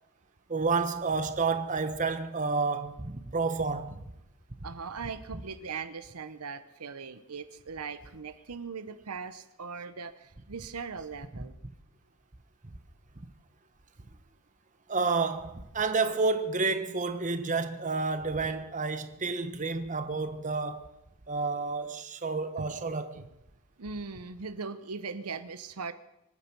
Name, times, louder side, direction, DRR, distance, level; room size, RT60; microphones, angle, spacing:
voice 1, 0.5-4.0 14.9-20.9 21.3-23.2, right 4 dB, 35° right, 1.1 m, -30 dB
voice 2, 4.6-11.5 22.6-22.8 23.2-23.3 23.8-25.9, right 5 dB, 85° right, 0.9 m, -40 dB
25.0 x 9.1 x 6.1 m
head